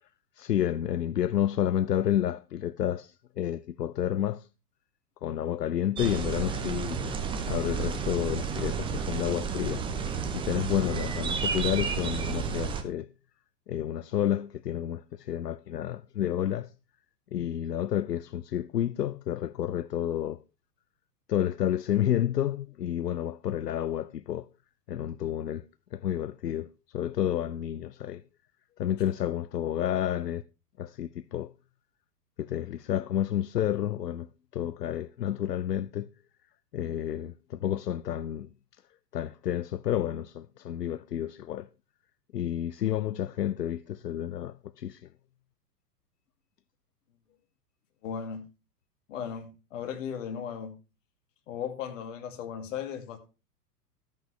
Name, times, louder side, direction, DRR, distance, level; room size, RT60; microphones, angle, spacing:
voice 1, 0.4-4.5 5.2-7.0 7.5-9.8 10.3-13.1 13.7-16.7 17.3-20.4 21.3-24.4 24.9-25.6 25.9-26.7 26.9-28.2 28.8-30.4 30.8-31.5 32.4-34.3 34.5-36.1 36.7-38.5 39.1-41.7 42.3-45.1, left 11 dB, 80° left, 0.6 m, -30 dB
sound 1, 6.0-12.8, right 6 dB, 10° right, 0.7 m, -31 dB
voice 2, 48.0-48.4 49.1-50.7 51.5-53.2, left 8 dB, 50° left, 2.3 m, -36 dB
13.0 x 8.4 x 3.2 m
figure-of-eight pair, 105°, 48 cm